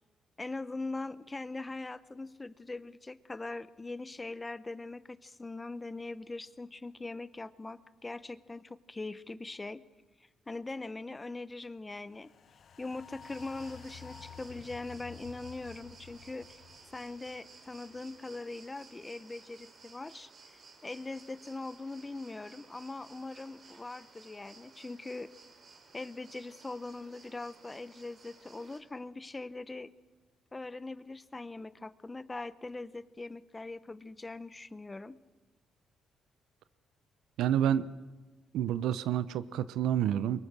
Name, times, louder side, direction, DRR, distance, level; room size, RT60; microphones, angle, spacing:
voice 1, 0.4-9.8 10.5-12.3 12.8-16.6 16.9-25.3 25.9-29.9 30.5-35.2, left 3 dB, 20° left, 16 dB, 0.9 m, -41 dB
sound 1, 12.1-18.5 18.8-18.9, left 8 dB, 55° left, 1.2 m, -53 dB
sound 2, 13.2-28.8, right 4 dB, 45° right, 3.3 m, -56 dB
voice 2, 37.4-37.9 38.5-40.4, right 10 dB, 85° right, 16 dB, 0.8 m, -29 dB
23.5 x 21.5 x 6.3 m, 1.2 s
cardioid pair, 90°, 0 cm